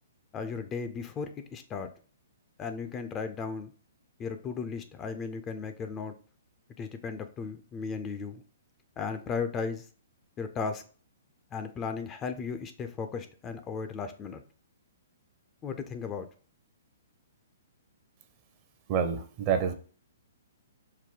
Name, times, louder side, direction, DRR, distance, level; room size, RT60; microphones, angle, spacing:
voice 1, 0.3-1.9 2.6-3.7 4.2-6.1 6.8-8.4 9.0-9.8 10.4-10.8 11.5-14.4 15.6-16.3, left 5 dB, 20° left, 8 dB, 0.5 m, -35 dB
voice 2, 18.9-19.7, right 7 dB, 35° right, 8 dB, 0.7 m, -27 dB
4.5 x 2.2 x 3.7 m, 0.39 s
hypercardioid pair, 130°, 0 cm